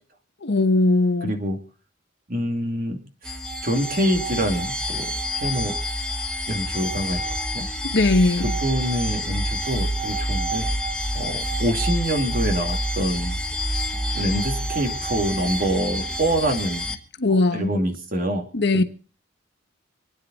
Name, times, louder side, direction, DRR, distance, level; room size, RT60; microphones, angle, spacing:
voice 1, 0.4-1.3 7.9-8.6 17.2-17.7 18.5-18.8, left 2 dB, 60° left, 1.1 m, -19 dB
voice 2, 1.2-1.6 2.3-5.1 5.4-5.8 6.5-7.7 8.6-10.7 11.1-13.4 14.1-17.0 17.5-18.5 18.7-18.8, equal, 50° right, 2.6 m, -26 dB
sound 1, 3.3-17.0, equal, 5° left, 1.6 m, -27 dB
27.0 x 9.7 x 4.1 m
head